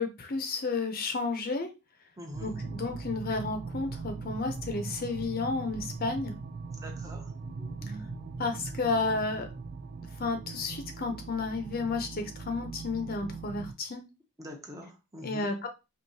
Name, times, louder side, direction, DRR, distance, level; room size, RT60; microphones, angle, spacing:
voice 1, 0.0-1.7 2.4-6.3 8.4-9.5 10.0-14.0 15.2-15.7, left 3 dB, 45° left, 6 dB, 0.6 m, -32 dB
voice 2, 2.2-2.6 6.7-8.4 14.4-15.5, equal, 15° right, 1 dB, 0.7 m, -44 dB
sound 1, 2.3-13.7, right 4 dB, 45° right, 0.3 m, -40 dB
4.6 x 2.7 x 2.7 m, 0.27 s
head